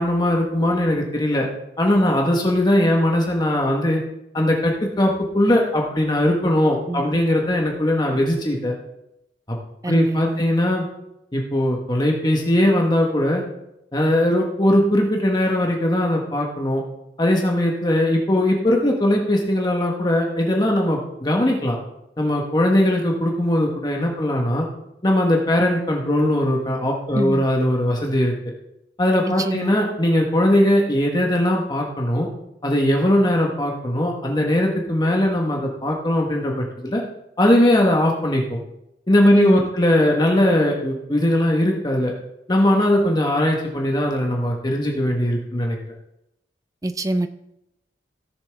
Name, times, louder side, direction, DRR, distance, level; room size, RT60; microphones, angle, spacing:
voice 1, 0.0-1.5 1.8-4.0 4.3-8.7 9.5-9.6 9.9-10.9 11.3-13.4 13.9-16.8 17.2-21.8 22.2-24.7 25.0-28.3 29.0-32.3 32.6-37.0 37.4-38.6 39.1-42.1 42.5-45.9, left 1 dB, 25° left, 0 dB, 1.3 m, -20 dB
voice 2, 6.9-7.2 9.8-10.4 27.1-27.4 29.4-29.7 39.4-39.7 46.8-47.3, right 1 dB, 20° right, 10 dB, 0.5 m, -25 dB
17.0 x 7.0 x 3.5 m, 0.85 s
head